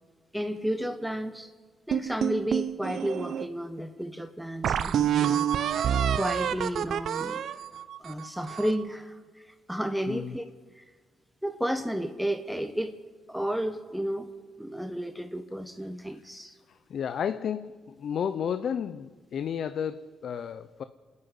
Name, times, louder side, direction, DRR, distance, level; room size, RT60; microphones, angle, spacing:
voice 1, 0.3-1.5 1.9-5.5 6.1-7.4 8.0-10.4 10.7-10.9 11.4-13.0 13.3-14.3 14.6-16.6, equal, ahead, 1.1 m, -32 dB
sound 1, 1.9-3.5 4.0-4.1 4.6-8.8, right 9 dB, 65° right, 0.8 m, -28 dB
voice 2, 16.7-20.8, left 8 dB, 60° left, 0.7 m, -32 dB
27.5 x 9.8 x 9.9 m
cardioid pair, 90°, 0 cm